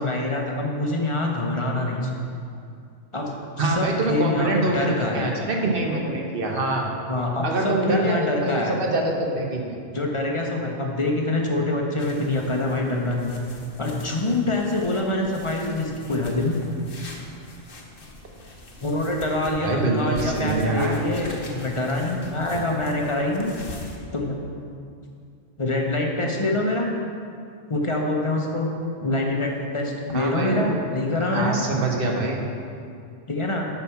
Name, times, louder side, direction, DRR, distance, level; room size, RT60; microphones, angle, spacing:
voice 1, 0.0-2.1 3.1-5.3 7.1-8.8 9.9-13.4 13.8-16.6 18.8-23.5 24.1-24.4 25.6-26.9 27.7-28.7 29.0-31.6 33.3-33.6, left 2 dB, 25° left, 0 dB, 0.9 m, -25 dB
voice 2, 3.6-6.9 7.4-9.8 19.6-21.0 22.5-22.6 30.1-30.7 31.1-32.4, right 2 dB, 45° right, 0 dB, 1.3 m, -25 dB
sound 1, 12.0-24.0, left 2 dB, 45° left, 1.1 m, -42 dB
8.5 x 6.0 x 5.9 m, 2.4 s
omnidirectional pair, 1.3 m